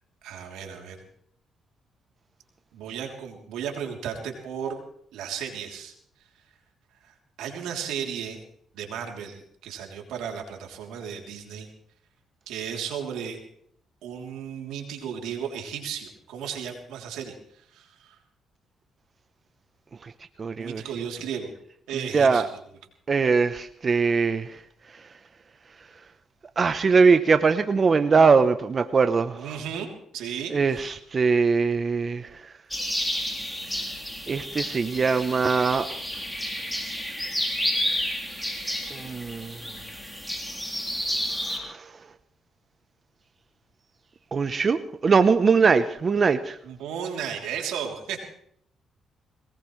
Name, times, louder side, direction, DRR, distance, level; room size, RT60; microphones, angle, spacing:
voice 1, 0.2-1.0 2.7-4.8 5.1-5.9 7.0-8.4 8.7-11.7 12.5-13.4 14.0-18.1 20.6-21.5 21.9-22.6 29.3-30.8 46.6-48.3, right 8 dB, 90° right, 2 dB, 3.2 m, -34 dB
voice 2, 20.4-20.8 21.9-22.5 23.1-24.6 24.9-25.0 26.6-29.6 30.5-32.5 34.3-35.9 38.9-39.6 41.3-41.9 44.3-46.6, right 5 dB, 40° right, 10 dB, 0.8 m, -22 dB
sound 1, 32.7-41.6, equal, 5° left, 3.6 m, -31 dB
22.0 x 19.5 x 3.2 m, 0.69 s
cardioid pair, 90°, 0 cm